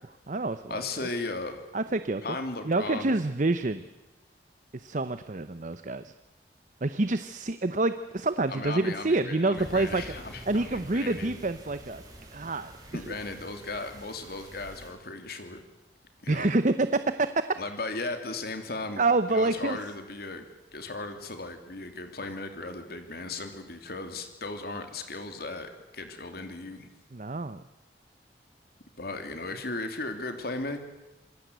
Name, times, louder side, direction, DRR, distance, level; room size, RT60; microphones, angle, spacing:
voice 1, 0.0-1.1 1.7-2.2 2.6-3.8 4.7-6.1 6.8-10.0 10.5-12.0 12.3-13.0 16.3-17.3 19.0-19.8 27.1-27.6, right 2 dB, 45° right, 11 dB, 0.8 m, -27 dB
voice 2, 0.7-1.6 2.2-3.1 8.5-11.4 12.9-15.6 16.2-16.5 17.6-19.0 19.3-20.4 20.7-26.9 29.0-30.8, left 2 dB, 60° left, 6 dB, 3.0 m, -36 dB
sound 1, 9.6-14.9, right 1 dB, 20° right, 7.1 m, -47 dB
27.0 x 21.5 x 8.1 m, 1.0 s
head